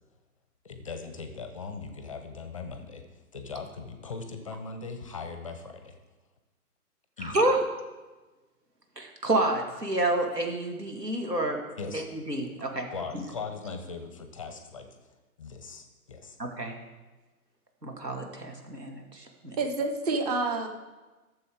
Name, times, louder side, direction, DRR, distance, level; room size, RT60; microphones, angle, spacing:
voice 1, 0.6-3.0 3.3-6.0 7.2-7.4 11.8-12.1 12.9-14.9 15.4-16.4, left 4 dB, 20° left, 7 dB, 0.6 m, -39 dB
voice 2, 7.2-7.6 9.0-11.6 11.9-12.9 13.1-13.2 16.4-16.7 17.8-19.6, right 2 dB, 85° right, 3 dB, 1.9 m, -29 dB
voice 3, 19.6-20.7, right 3 dB, 25° right, 5 dB, 0.7 m, -28 dB
13.5 x 7.0 x 3.5 m, 1.2 s
figure-of-eight pair, 130°, 47 cm